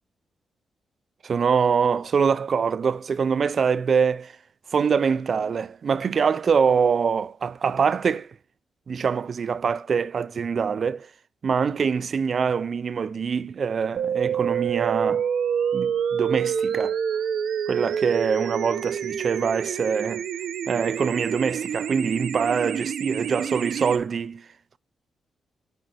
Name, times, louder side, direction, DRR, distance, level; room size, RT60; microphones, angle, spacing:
voice 1, 1.2-4.4 4.7-8.3 8.9-11.1 11.4-15.2 15.7-17.0 17.7-20.2 20.7-24.4, right 6 dB, 50° right, 0.3 m, -24 dB
sound 1, 14.0-24.0, right 8 dB, 85° right, 0.6 m, -27 dB
7.8 x 4.5 x 6.7 m
wide cardioid pair, 130°, 0 cm